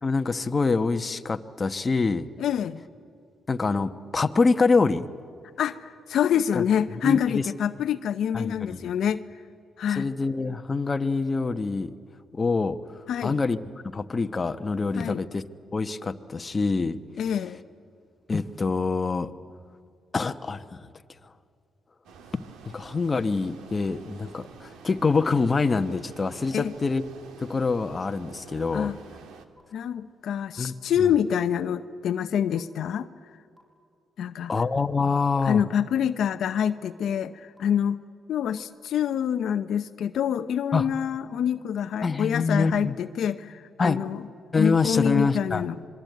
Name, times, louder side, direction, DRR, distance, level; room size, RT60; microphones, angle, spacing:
voice 1, 0.0-2.3 3.5-5.1 6.5-6.7 7.0-7.5 8.3-8.9 10.0-11.9 12.3-13.6 13.9-15.4 15.7-17.0 18.3-19.3 20.1-20.8 22.3-27.0 27.4-28.9 30.6-30.7 34.5-35.7 40.7-40.9 42.0-42.9 43.8-44.0 44.5-45.7, left 4 dB, 30° left, 8 dB, 1.1 m, -25 dB
voice 2, 2.4-2.8 5.6-9.2 9.8-10.1 13.1-13.4 15.0-15.3 17.2-17.6 26.5-26.7 28.7-29.0 29.7-33.1 34.2-34.5 35.4-38.0 38.3-44.2 44.6-45.7, left 8 dB, 70° left, 10 dB, 0.7 m, -26 dB
sound 1, 22.0-29.5, right 6 dB, 85° right, 1.9 m, -48 dB
sound 2, 29.6-29.7 30.6-30.7 31.6-31.7 32.6-32.7 33.6-33.7 34.6-34.7 35.6-35.7 36.6-36.7 37.6-37.7 38.6-38.7, equal, 10° right, 5.7 m, -55 dB
26.0 x 22.5 x 9.4 m, 2.4 s
cardioid pair, 95°, 0 cm